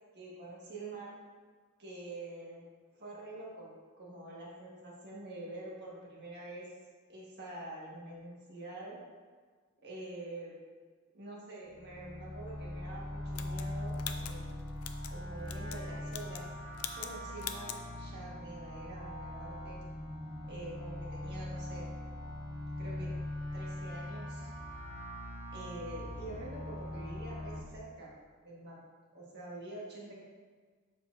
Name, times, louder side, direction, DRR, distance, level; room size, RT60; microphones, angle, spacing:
voice 1, 0.1-1.2 1.8-2.7 3.0-6.7 7.1-9.0 9.8-10.5 11.1-14.5 15.1-16.5 16.9-19.8 20.5-21.9 22.8-23.1 23.5-24.5 25.5-28.1 28.4-28.8 29.1-30.2, right 2 dB, 50° right, -5 dB, 1.6 m, -46 dB
sound 1, 11.7-27.6, left 1 dB, 40° left, 1.7 m, -41 dB
sound 2, 13.3-15.1 15.5-15.8 16.1-16.5 16.8-17.1 17.4-17.8, left 10 dB, 80° left, 0.4 m, -42 dB
7.0 x 5.8 x 2.7 m, 1.5 s
head